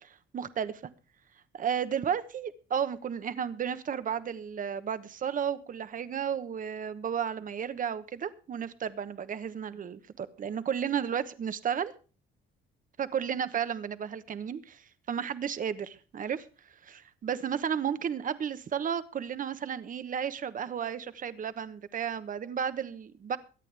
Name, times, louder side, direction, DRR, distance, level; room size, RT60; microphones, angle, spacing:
voice 1, 0.3-0.8 1.5-11.9 13.0-16.5 16.8-23.4, right 8 dB, 40° right, 13 dB, 1.1 m, -33 dB
23.5 x 9.2 x 3.4 m, 0.36 s
cardioid pair, 115°, 20 cm